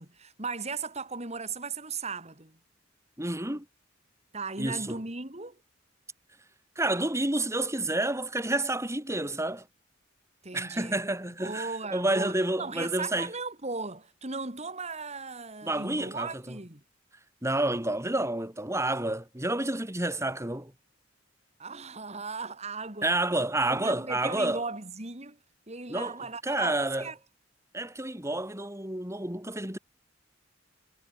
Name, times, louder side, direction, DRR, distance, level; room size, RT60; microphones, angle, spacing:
voice 1, 0.0-2.6 4.3-5.6 10.4-11.0 11.4-16.8 21.6-23.1 23.4-25.4 25.7-27.2, right 4 dB, 35° right, 4.0 m, -37 dB
voice 2, 3.2-3.7 4.6-5.0 6.8-9.7 10.5-13.3 15.6-16.6 17.4-20.7 23.0-24.6 25.9-26.2 26.4-27.1 27.7-29.8, right 1 dB, 15° right, 4.0 m, -29 dB
head